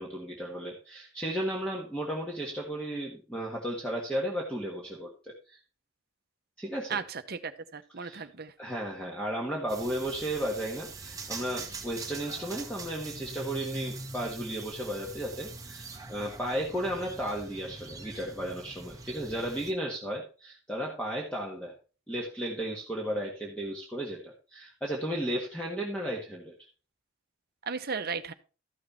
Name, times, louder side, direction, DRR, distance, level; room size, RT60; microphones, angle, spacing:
voice 1, 0.0-5.6 6.6-7.0 8.0-8.2 8.6-21.7 22.1-26.5, right 1 dB, 5° left, -2 dB, 1.6 m, -34 dB
voice 2, 6.9-8.5 27.6-28.3, right 5 dB, 45° right, 9 dB, 0.9 m, -35 dB
sound 1, 9.7-19.7, right 3 dB, 15° right, 1.2 m, -43 dB
13.5 x 6.5 x 4.3 m, 0.36 s
head